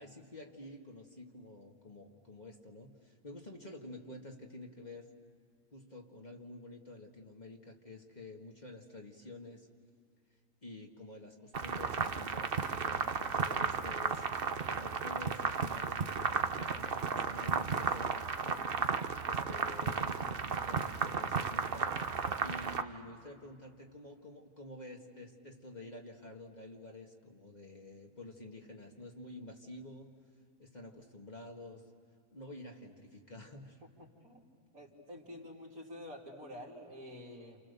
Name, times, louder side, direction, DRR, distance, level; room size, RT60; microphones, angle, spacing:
voice 1, 0.0-5.1 5.7-9.7 10.6-14.3 14.7-18.7 19.2-22.0 22.4-30.2 30.6-31.9 32.3-33.8, left 2 dB, 30° left, 0 dB, 2.0 m, -49 dB
sound 1, 11.5-22.8, right 5 dB, 45° right, 1.0 m, -34 dB
voice 2, 33.8-34.4 34.7-37.6, left 1 dB, 70° right, -2 dB, 3.7 m, -48 dB
29.5 x 29.5 x 6.9 m, 2.1 s
omnidirectional pair, 1.5 m